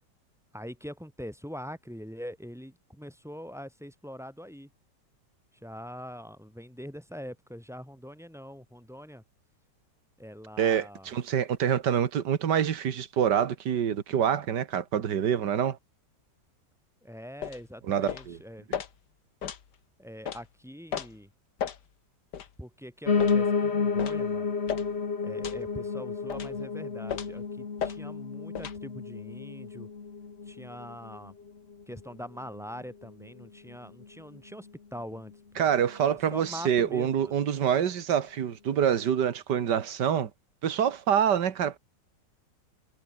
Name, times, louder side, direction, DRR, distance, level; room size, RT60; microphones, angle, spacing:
voice 1, 0.5-4.7 5.6-9.2 10.2-11.1 17.0-18.7 20.0-21.3 22.6-24.5 25.2-29.9 30.5-31.4 31.9-35.7 36.0-37.3, equal, ahead, 5.4 m, -43 dB
voice 2, 10.6-15.8 17.9-18.4 35.6-40.3 40.6-41.8, right 9 dB, 75° right, 2.0 m, -26 dB
sound 1, 17.4-17.6 18.1-18.3 18.7-18.9 19.4-19.6 20.3-20.4 20.9-21.1 21.6-21.8 22.3-22.5 23.2-23.4 24.0-24.2 24.7-24.9 25.4-25.6 26.3-26.5 27.1-27.4 27.8-28.0 28.5-28.8, left 8 dB, 70° left, 2.0 m, -34 dB
Piano, 23.1-32.2 32.6-33.7 34.0-34.1 34.3-34.4 34.7-34.8 35.3-35.4, left 5 dB, 40° left, 1.8 m, -31 dB
omnidirectional pair, 1.9 m